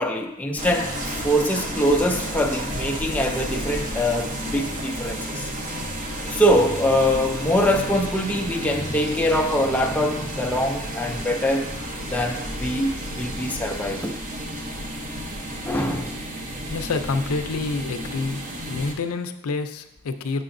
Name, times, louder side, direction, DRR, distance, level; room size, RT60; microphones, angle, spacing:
voice 1, 0.0-5.5 6.3-11.7 12.1-14.2 15.6-16.2, equal, 5° left, 2 dB, 0.3 m, -23 dB
sound 1, 0.6-18.9, equal, 35° right, 0.7 m, -32 dB
voice 2, 16.7-18.4 18.7-20.4, left 4 dB, 75° left, 9 dB, 0.4 m, -27 dB
6.9 x 6.7 x 2.5 m, 0.89 s
head